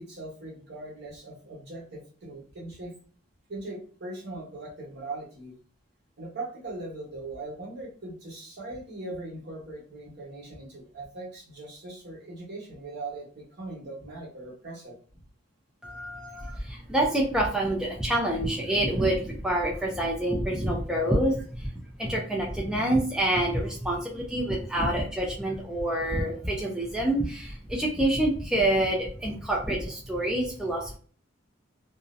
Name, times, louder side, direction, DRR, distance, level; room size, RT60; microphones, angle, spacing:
voice 1, 0.0-2.9 3.5-5.5 6.2-15.0 24.7-24.9, right 2 dB, 55° right, -3 dB, 1.0 m, -40 dB
voice 2, 15.8-21.7 22.0-31.0, right 1 dB, 5° right, -2 dB, 0.3 m, -27 dB
2.5 x 2.0 x 2.5 m, 0.43 s
head